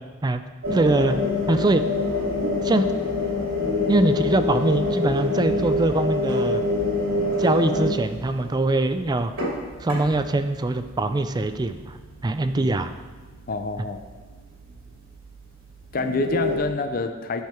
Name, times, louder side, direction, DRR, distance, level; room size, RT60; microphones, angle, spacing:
sound 1, 0.6-16.6, left 2 dB, 90° right, 2.9 m, -27 dB
voice 1, 0.7-1.2 1.5-1.9 2.6-2.9 3.9-6.6 7.4-9.3 9.8-12.0 12.2-12.9, right 2 dB, 20° right, 9 dB, 0.4 m, -22 dB
voice 2, 13.5-14.0 15.9-17.4, left 3 dB, 45° left, 8 dB, 0.5 m, -27 dB
10.5 x 5.6 x 4.4 m, 1.3 s
head